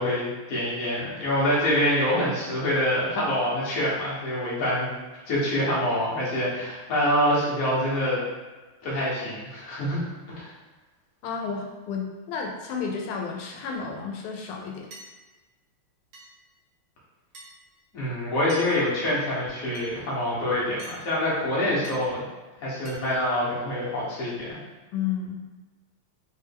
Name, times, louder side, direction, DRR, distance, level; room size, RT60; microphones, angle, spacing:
voice 1, 0.0-4.9 5.2-8.2 8.8-10.0 10.3-10.5 17.9-22.3 22.6-24.6, left 1 dB, 50° left, -7 dB, 1.3 m, -26 dB
voice 2, 11.2-14.9 24.9-25.4, left 6 dB, 85° left, 0 dB, 1.5 m, -32 dB
sound 1, 13.7-13.9 14.9-15.1 16.1-16.3 17.3-17.5 18.5-18.7 19.7-19.9 20.8-21.0 21.8-22.0 22.9-23.0, right 2 dB, 80° right, 0.6 m, -44 dB
3.3 x 3.1 x 3.4 m, 1.2 s
omnidirectional pair, 2.4 m